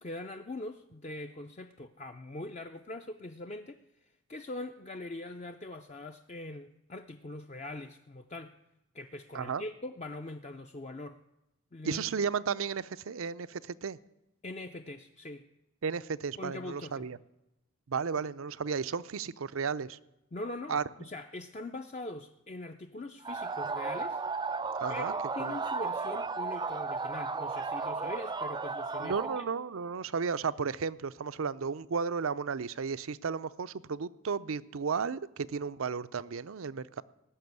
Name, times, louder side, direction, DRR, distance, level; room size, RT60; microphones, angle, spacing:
voice 1, 0.0-8.5 8.9-11.2 11.7-12.0 14.4-15.5 16.4-17.1 20.3-24.2 24.9-29.5, left 2 dB, 30° left, 6 dB, 0.5 m, -42 dB
voice 2, 11.8-14.0 15.8-17.2 17.9-20.0 20.7-20.8 24.8-25.1 25.4-25.6 29.0-37.0, right 5 dB, 75° right, 15 dB, 0.5 m, -34 dB
sound 1, 23.2-29.4, right 4 dB, 20° right, 0.5 m, -34 dB
18.5 x 6.9 x 9.5 m, 0.92 s
head